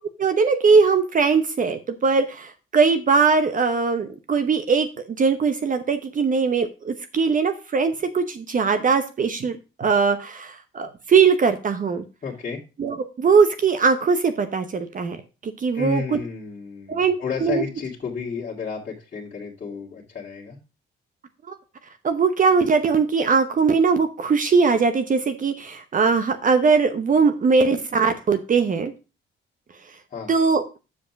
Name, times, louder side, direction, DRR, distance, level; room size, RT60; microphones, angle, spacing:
voice 1, 0.2-4.9 5.2-12.0 12.8-15.2 15.4-16.2 16.9-17.1 17.4-17.6 21.5-21.6 22.0-28.9 30.3-30.8, right 5 dB, 40° right, 9 dB, 0.9 m, -20 dB
voice 2, 12.2-12.6 15.7-20.6 30.1-30.3, left 5 dB, 40° left, -5 dB, 2.0 m, -32 dB
7.1 x 5.0 x 5.9 m, 0.31 s
cardioid pair, 90°, 20 cm